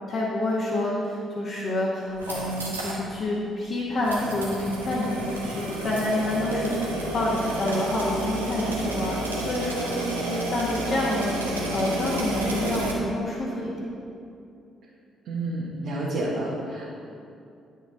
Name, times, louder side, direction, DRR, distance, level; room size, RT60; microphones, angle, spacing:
voice 1, 0.1-9.9 10.3-13.7, left 1 dB, 45° left, -5 dB, 1.2 m, -28 dB
sound 1, 2.1-3.0 3.3-3.4 4.0-12.9, right 1 dB, 85° right, 0.8 m, -31 dB
voice 2, 15.2-16.9, right 1 dB, 60° right, -7 dB, 1.2 m, -30 dB
9.4 x 5.8 x 3.7 m, 2.6 s
figure-of-eight pair, 45°, 0 cm